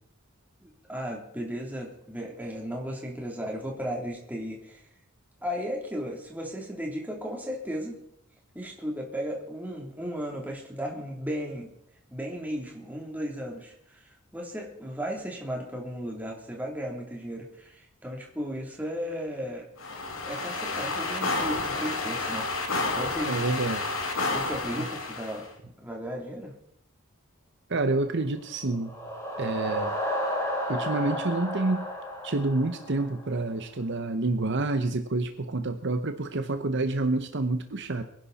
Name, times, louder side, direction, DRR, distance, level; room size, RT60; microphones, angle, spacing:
voice 1, 0.6-4.8 5.4-8.0 8.5-11.7 12.1-19.7 20.3-22.5 22.9-23.4 24.3-25.5 25.8-26.5, equal, 10° right, -1 dB, 3.3 m, -35 dB
sound 1, 19.8-25.5, left 3 dB, 70° left, 2.4 m, -30 dB
voice 2, 23.3-23.9 27.7-28.9 29.4-30.0 30.7-31.9 32.2-38.0, right 2 dB, 60° right, 8 dB, 1.0 m, -28 dB
sound 2, 28.5-33.4, left 1 dB, 15° left, 3.1 m, -32 dB
23.0 x 11.0 x 4.2 m, 0.73 s
head